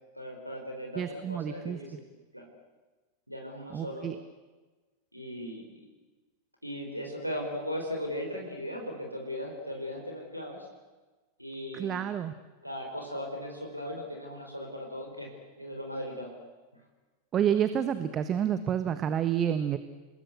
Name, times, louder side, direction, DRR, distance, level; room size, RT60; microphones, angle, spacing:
voice 1, 0.1-1.9 2.3-2.5 3.3-4.1 5.1-5.9 6.6-10.7 11.4-12.0 12.6-16.3, equal, 90° right, 2 dB, 4.3 m, -38 dB
voice 2, 0.9-2.0 3.7-4.2 11.7-12.3 17.3-19.8, right 9 dB, 30° right, 11 dB, 1.3 m, -29 dB
29.5 x 20.0 x 8.3 m, 1.3 s
figure-of-eight pair, 90°, 0 cm